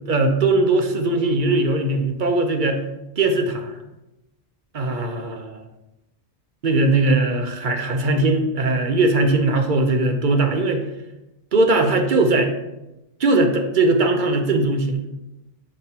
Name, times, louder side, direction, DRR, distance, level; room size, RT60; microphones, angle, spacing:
voice 1, 0.1-2.8 3.2-3.8 4.7-5.6 6.6-10.8 11.5-12.5 13.2-15.0, right 2 dB, 55° right, 5 dB, 0.8 m, -19 dB
7.5 x 5.1 x 2.8 m, 0.96 s
omnidirectional pair, 1.1 m